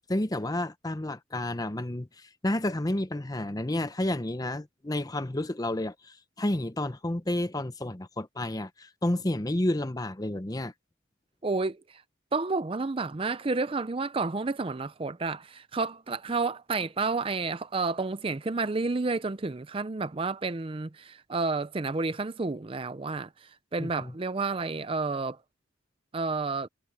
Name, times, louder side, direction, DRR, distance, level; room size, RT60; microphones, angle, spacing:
voice 1, 0.0-10.7 23.8-24.1, left 1 dB, 20° left, 0.7 m, -31 dB
voice 2, 11.4-12.0 12.3-25.4 26.1-26.7, right 3 dB, 30° right, 0.5 m, -30 dB
head